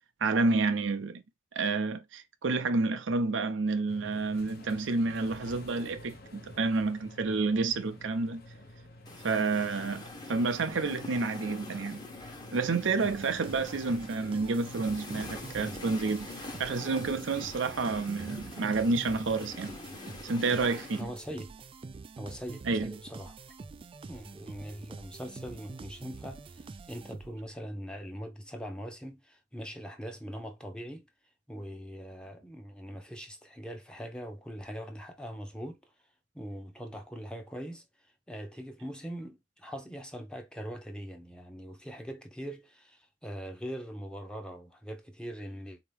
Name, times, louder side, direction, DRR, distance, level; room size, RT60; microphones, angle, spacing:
voice 1, 0.2-1.2 1.5-8.4 9.2-12.0 12.5-16.3 16.6-19.8 20.2-21.1 22.6-23.0, right 3 dB, 85° right, 0.6 m, -29 dB
sound 1, 3.9-16.0, left 1 dB, 55° left, 1.0 m, -50 dB
sound 2, 9.1-21.0, left 2 dB, 25° left, 1.1 m, -44 dB
sound 3, 13.0-27.6, right 3 dB, 30° right, 0.3 m, -46 dB
voice 2, 21.0-21.6 22.2-23.4 24.1-31.1 31.5-35.8 36.3-37.8 38.3-45.8, equal, 5° left, 0.8 m, -42 dB
4.4 x 2.9 x 3.4 m
head